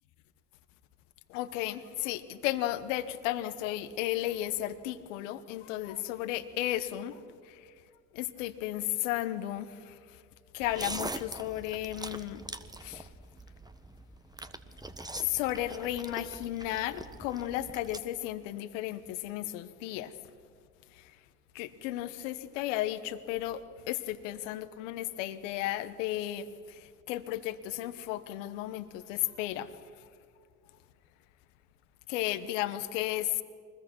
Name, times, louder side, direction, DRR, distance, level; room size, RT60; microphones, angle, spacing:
voice 1, 1.3-7.7 8.1-10.2 10.5-12.5 12.8-13.1 15.2-20.1 20.9-21.1 21.5-29.7 30.0-30.1 32.1-33.4, left 14 dB, 80° left, 13 dB, 1.1 m, -34 dB
sound 1, 10.6-18.0, right 2 dB, 10° right, 1.5 m, -43 dB
24.5 x 21.0 x 6.1 m, 2.1 s
hypercardioid pair, 50°, 37 cm